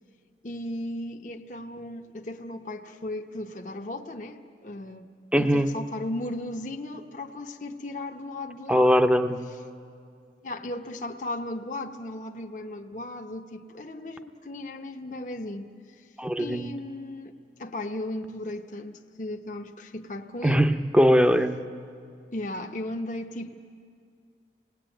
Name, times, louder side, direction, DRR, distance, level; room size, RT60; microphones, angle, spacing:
voice 1, 0.4-5.1 5.4-8.9 9.5-9.6 10.4-16.1 16.4-20.7 22.3-23.5, left 1 dB, 45° left, 3 dB, 1.0 m, -36 dB
voice 2, 5.3-5.7 8.7-9.4 16.2-16.7 20.4-21.6, equal, 5° right, 8 dB, 0.7 m, -21 dB
29.5 x 19.5 x 9.1 m, 2.4 s
head